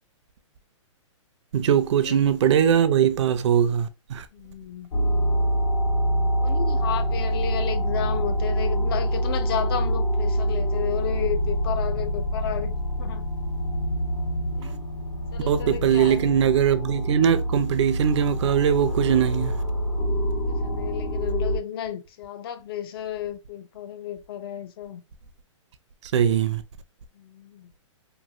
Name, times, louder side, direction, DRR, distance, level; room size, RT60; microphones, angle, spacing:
voice 1, 1.5-4.3 15.4-19.5 26.1-26.6, right 8 dB, 65° right, 0.5 m, -21 dB
voice 2, 4.3-4.9 6.4-13.3 14.5-14.8 15.3-16.2 20.0-25.0 27.1-27.7, left 10 dB, 50° left, 0.4 m, -33 dB
sound 1, 4.9-21.6, equal, 65° left, 1.3 m, -26 dB
3.0 x 2.4 x 2.5 m
hypercardioid pair, 140°, 16 cm